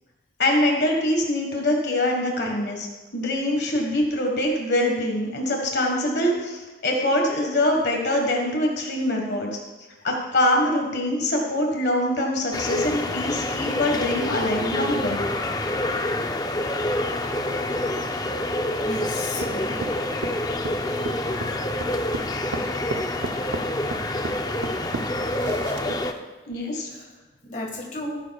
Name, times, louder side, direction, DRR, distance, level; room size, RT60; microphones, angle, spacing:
voice 1, 0.4-2.9 3.1-9.5 10.0-15.2 26.5-26.9, left 1 dB, 70° left, 1 dB, 1.5 m, -24 dB
sound 1, 12.5-26.1, left 1 dB, 20° left, 0.5 m, -27 dB
voice 2, 18.8-19.9 26.9-28.2, left 2 dB, 45° left, 0 dB, 1.7 m, -34 dB
sound 2, 19.4-26.2, right 3 dB, 85° right, 0.6 m, -34 dB
15.5 x 9.7 x 2.4 m, 1.2 s
head